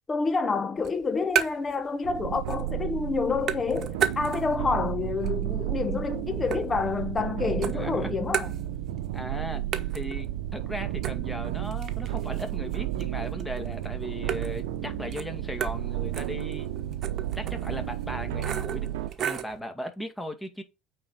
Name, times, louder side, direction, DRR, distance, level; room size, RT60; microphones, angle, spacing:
voice 1, 0.1-8.5, left 4 dB, 25° left, 1.2 m, -28 dB
sound 1, 0.8-1.8 2.1-2.8 3.1-4.7 5.1-7.3 7.6-9.1 9.3-9.4 9.7-19.6, right 9 dB, 50° right, 1.2 m, -35 dB
sound 2, 2.0-19.1, right 12 dB, 80° right, 0.8 m, -32 dB
voice 2, 7.7-8.1 9.1-9.6 9.9-17.0 17.4-18.9 19.2-20.6, left 1 dB, 10° left, 2.2 m, -37 dB
8.5 x 4.5 x 5.1 m
hypercardioid pair, 80°, 0 cm